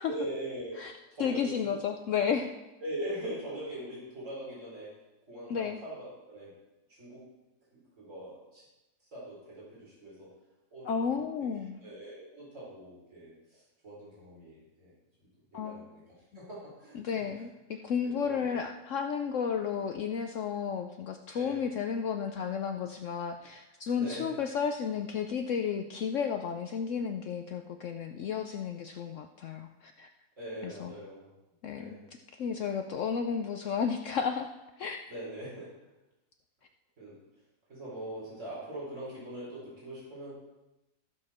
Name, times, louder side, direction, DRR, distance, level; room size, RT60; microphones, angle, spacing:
voice 1, 0.1-0.8 1.1-1.8 2.8-4.9 5.3-6.5 6.9-7.2 8.0-8.6 9.1-10.3 10.7-11.2 11.8-14.9 15.5-16.0 16.3-17.2 18.0-18.6 21.3-21.6 23.9-24.3 30.4-31.3 31.7-32.0 35.1-35.7 37.0-37.2 37.7-40.3, right 1 dB, 50° right, -7 dB, 4.5 m, -41 dB
voice 2, 1.2-2.5 5.5-5.8 10.8-11.8 15.5-15.8 16.9-30.1 30.6-30.9 31.6-32.0 32.4-34.5 34.8-35.0, left 7 dB, 65° left, 5 dB, 0.9 m, -32 dB
14.5 x 6.5 x 4.3 m, 1.0 s
omnidirectional pair, 1.6 m